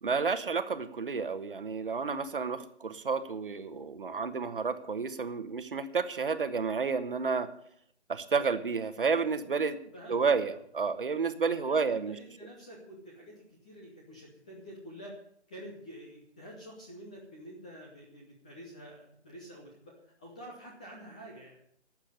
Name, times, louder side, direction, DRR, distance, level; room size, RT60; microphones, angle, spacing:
voice 1, 0.0-7.5 8.1-9.8 10.1-12.2, right 5 dB, 50° right, 11 dB, 1.3 m, -31 dB
voice 2, 11.4-15.2 15.5-21.6, equal, 5° left, -3 dB, 0.7 m, -48 dB
12.0 x 7.4 x 9.7 m, 0.65 s
figure-of-eight pair, 155°, 34 cm